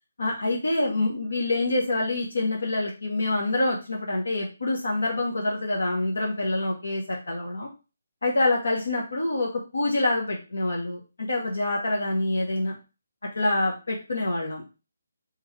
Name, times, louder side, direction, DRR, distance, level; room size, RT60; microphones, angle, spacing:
voice 1, 0.2-7.7 8.2-12.7 13.3-14.7, left 2 dB, 75° left, -1 dB, 1.1 m, -26 dB
3.8 x 3.6 x 3.2 m, 0.31 s
figure-of-eight pair, 150°, 0 cm